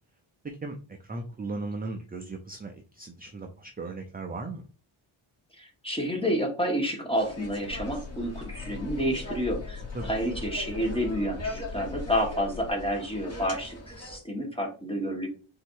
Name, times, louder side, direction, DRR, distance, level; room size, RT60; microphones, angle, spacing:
voice 1, 0.4-0.8 1.0-4.6 9.9-10.1, right 3 dB, 20° right, 2 dB, 0.5 m, -37 dB
voice 2, 5.6-15.3, equal, 10° left, 1 dB, 1.4 m, -30 dB
sound 1, 7.2-14.2, left 1 dB, 30° left, 2.2 m, -40 dB
sound 2, 7.6-12.7, left 6 dB, 70° left, 0.7 m, -41 dB
4.1 x 2.8 x 4.5 m, 0.35 s
wide cardioid pair, 120°, 49 cm